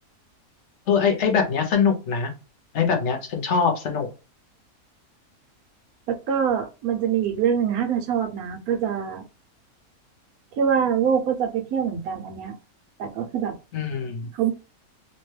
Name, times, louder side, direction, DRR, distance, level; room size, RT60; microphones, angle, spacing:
voice 1, 0.9-2.3 2.7-4.1 13.7-14.3, left 6 dB, 60° left, 0.9 m, -22 dB
voice 2, 6.1-9.2 10.5-12.6 13.0-13.5 14.3-14.5, right 8 dB, 80° right, 1.1 m, -24 dB
2.9 x 2.2 x 3.1 m
omnidirectional pair, 1.5 m